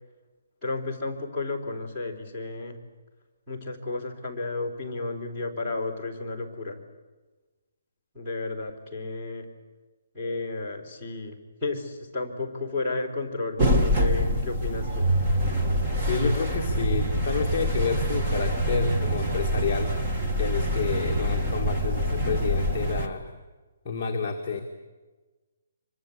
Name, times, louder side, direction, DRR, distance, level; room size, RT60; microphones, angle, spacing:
voice 1, 0.6-2.8 3.5-6.8 8.1-9.5 10.1-15.1, left 3 dB, ahead, -7 dB, 3.5 m, -32 dB
sound 1, 13.6-23.1, equal, 15° right, 1.5 m, -25 dB
voice 2, 16.0-19.9 20.4-23.3 23.8-24.6, left 5 dB, 15° left, -5 dB, 1.9 m, -29 dB
25.5 x 24.0 x 8.3 m, 1.2 s
hypercardioid pair, 180°, 0 cm